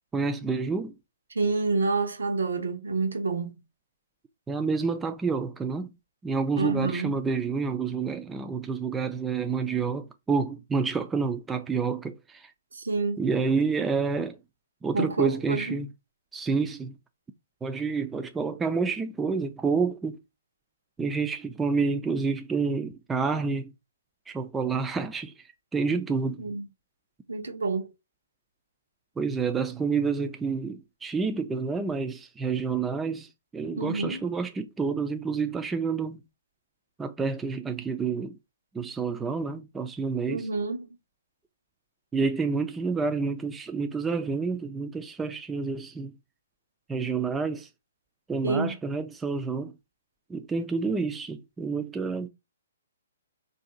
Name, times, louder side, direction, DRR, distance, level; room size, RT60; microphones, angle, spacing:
voice 1, 0.1-1.0 4.5-5.9 6.2-12.5 13.2-14.4 14.8-15.9 16.3-16.9 17.6-20.2 21.0-23.7 24.3-25.3 25.7-26.4 29.2-33.3 33.5-36.2 37.0-38.4 38.7-40.5 42.1-46.2 46.9-47.7 48.3-49.7 50.3-52.3, right 4 dB, 10° right, 0.3 m, -29 dB
voice 2, 1.3-3.5 6.6-7.1 12.7-13.2 14.9-15.8 26.4-26.7 27.3-27.9 33.8-34.2 40.3-40.9 48.4-48.7, right 3 dB, 85° right, 0.8 m, -28 dB
2.6 x 2.3 x 3.7 m
hypercardioid pair, 145°, 0 cm